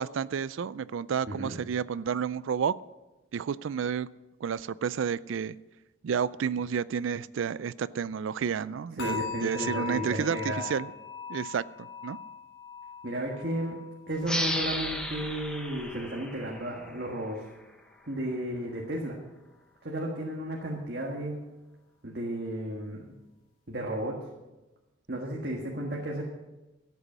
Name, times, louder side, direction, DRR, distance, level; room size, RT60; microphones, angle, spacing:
voice 1, 0.0-2.7 3.3-4.1 4.4-5.6 6.0-10.9 11.3-12.2, right 7 dB, 80° right, 18 dB, 0.4 m, -31 dB
voice 2, 1.3-1.6 9.0-10.6 13.0-13.8 14.1-17.4 18.1-19.2 19.8-21.4 22.0-23.1 23.7-24.2 25.1-26.2, right 1 dB, 55° right, -1 dB, 1.6 m, -33 dB
sound 1, 9.0-16.1 16.4-16.8 17.2-17.4, left 6 dB, 90° left, 3.8 m, -41 dB
sound 2, 14.2-17.5, left 1 dB, 5° left, 0.9 m, -34 dB
13.5 x 8.3 x 6.1 m, 1.1 s
head